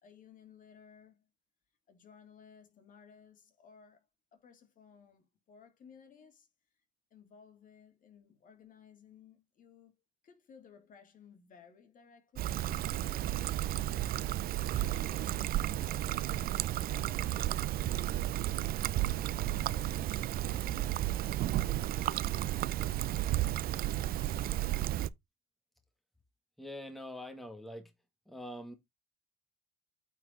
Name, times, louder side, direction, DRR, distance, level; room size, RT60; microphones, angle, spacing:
voice 1, 0.0-1.3 1.9-4.1 4.3-6.5 7.1-9.9 10.2-13.6 13.9-14.5 14.7-17.4 18.5-18.9 19.2-22.8, left 6 dB, 50° left, 2.6 m, -58 dB
Trickle dribble, 12.4-25.1, right 14 dB, 60° right, 0.5 m, -33 dB
voice 2, 26.6-27.9 28.3-28.7, left 1 dB, ahead, 1.7 m, -44 dB
9.0 x 4.6 x 3.8 m
cardioid pair, 110°, 17 cm